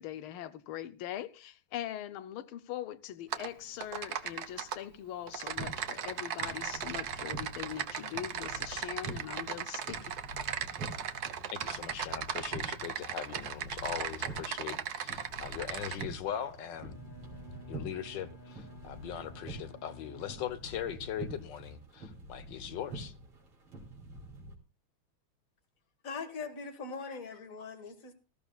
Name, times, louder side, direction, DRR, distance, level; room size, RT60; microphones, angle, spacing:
voice 1, 0.0-10.2, left 12 dB, 85° left, 1.6 m, -41 dB
Typing, 3.3-3.5 3.8-4.8 5.3-16.0, right 8 dB, 55° right, 1.2 m, -37 dB
sound 1, 5.5-24.5, right 2 dB, 80° right, 3.8 m, -47 dB
voice 2, 11.5-17.0 17.7-23.1, left 9 dB, 65° left, 1.6 m, -40 dB
Bowed string instrument, 16.7-20.9, equal, 25° left, 1.7 m, -53 dB
voice 3, 26.0-28.1, left 4 dB, 40° left, 1.9 m, -41 dB
19.5 x 14.0 x 2.3 m
omnidirectional pair, 2.3 m